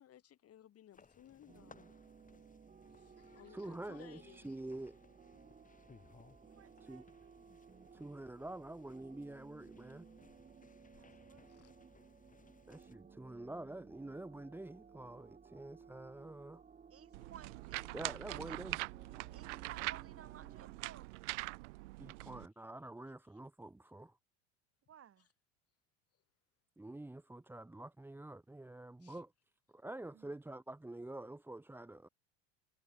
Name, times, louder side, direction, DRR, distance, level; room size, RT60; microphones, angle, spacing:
voice 1, 0.0-1.9 2.9-4.7 11.5-11.7 29.0-29.2, left 11 dB, 40° left, 2.3 m, -60 dB
sound 1, 0.9-13.0, left 5 dB, 20° left, 6.3 m, -65 dB
sound 2, 1.5-20.8, right 6 dB, 20° right, 1.7 m, -59 dB
voice 2, 3.5-5.0 6.8-7.0 7.9-10.1 12.7-16.6 17.9-18.8 22.0-24.2 26.8-29.3 29.7-32.1, right 2 dB, 5° right, 1.0 m, -47 dB
voice 3, 6.4-7.4 10.9-11.5 16.9-18.6 19.3-21.1 24.9-25.3 30.1-30.3, right 9 dB, 35° right, 5.5 m, -57 dB
sound 3, 17.1-22.5, right 23 dB, 70° right, 0.6 m, -43 dB
hypercardioid pair, 80°, 37 cm